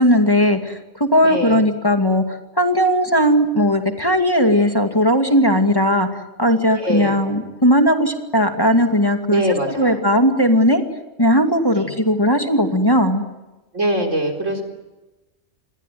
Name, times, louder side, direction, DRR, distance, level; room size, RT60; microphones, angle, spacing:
voice 1, 0.0-9.4 9.8-10.8 11.2-13.2, equal, 20° left, 4 dB, 2.4 m, -17 dB
voice 2, 1.2-1.6 6.8-7.1 9.3-10.0 11.7-11.9 13.7-14.6, right 1 dB, 75° right, 4 dB, 4.7 m, -22 dB
28.0 x 22.0 x 9.4 m, 1.1 s
omnidirectional pair, 1.3 m